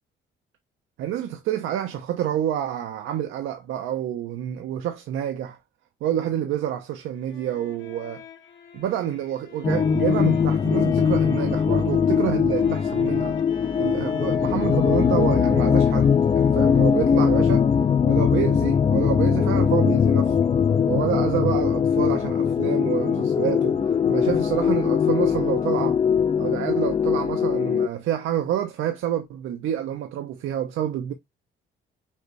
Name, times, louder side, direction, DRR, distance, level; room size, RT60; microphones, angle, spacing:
voice 1, 1.0-5.6 6.0-8.2 8.7-13.4 13.8-17.7 18.1-20.5 20.9-23.8 24.1-26.0 26.4-31.1, right 11 dB, 85° right, 0.6 m, -28 dB
sound 1, 6.9-17.8, left 6 dB, 70° left, 1.4 m, -47 dB
sound 2, 9.6-27.9, left 7 dB, 25° left, 0.4 m, -21 dB
5.5 x 2.6 x 3.1 m
cardioid pair, 90°, 20 cm